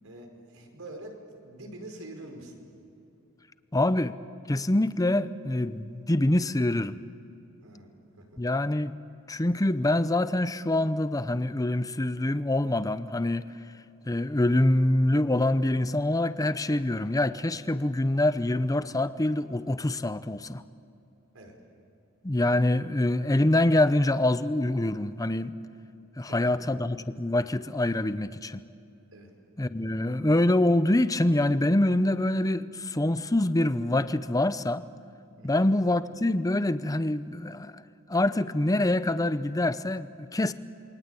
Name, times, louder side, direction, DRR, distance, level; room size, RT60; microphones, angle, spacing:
voice 1, 0.0-2.6 7.6-8.2 21.3-21.5 26.2-26.7 29.1-29.3 35.4-35.6, right 1 dB, 80° right, 2 dB, 5.1 m, -45 dB
voice 2, 3.7-4.2 4.5-7.0 8.4-9.0 9.3-13.5 14.1-20.6 22.2-25.5 26.2-28.6 29.6-34.8 35.4-37.8 38.1-40.5, left 1 dB, 15° left, 13 dB, 0.7 m, -25 dB
28.0 x 23.0 x 8.3 m, 2.8 s
head